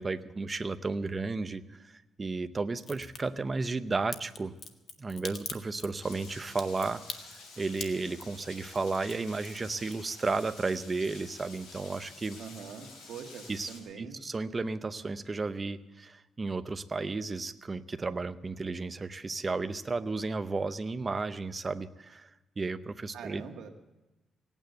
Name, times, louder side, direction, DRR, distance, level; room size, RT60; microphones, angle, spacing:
voice 1, 0.0-4.5 5.0-7.0 7.3-12.4 13.5-22.3 22.6-23.4, right 3 dB, 25° right, 11 dB, 0.6 m, -33 dB
Crack, 2.8-3.2 4.1-10.4 10.7-11.3 11.6-11.7, left 5 dB, 50° left, 1.2 m, -42 dB
Rain, 6.0-13.8, left 3 dB, 80° left, 5.2 m, -50 dB
voice 2, 12.4-14.2 14.5-14.6 23.1-23.7, right 6 dB, 70° right, 3 dB, 1.7 m, -44 dB
17.5 x 9.0 x 8.0 m, 1.1 s
cardioid pair, 125°, 0 cm